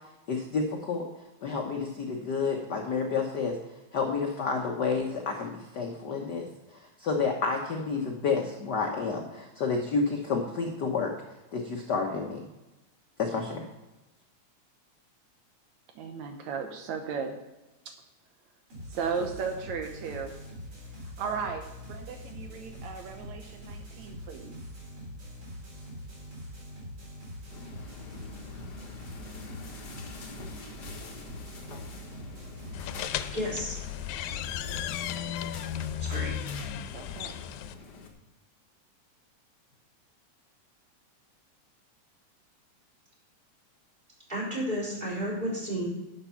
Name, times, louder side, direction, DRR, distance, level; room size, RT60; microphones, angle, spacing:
voice 1, 0.3-1.0 1.4-3.6 3.9-6.5 6.7-11.1 11.5-12.4 13.2-13.6, left 4 dB, 65° left, 2 dB, 1.0 m, -30 dB
voice 2, 16.0-17.4 17.9-18.0 18.9-20.3 21.2-24.6 34.3-34.9 36.9-37.3, right 6 dB, 75° right, 5 dB, 2.1 m, -36 dB
sound 1, 18.7-33.0, equal, 50° right, 4.7 m, -44 dB
sound 2, 27.5-38.1, left 3 dB, 45° left, 1.5 m, -46 dB
sound 3, 32.7-37.7, left 9 dB, 90° left, 2.0 m, -35 dB
voice 3, 33.3-33.7 36.0-36.4 44.3-45.8, equal, 15° right, -5 dB, 4.4 m, -32 dB
11.5 x 6.7 x 5.8 m, 1.0 s
omnidirectional pair, 3.3 m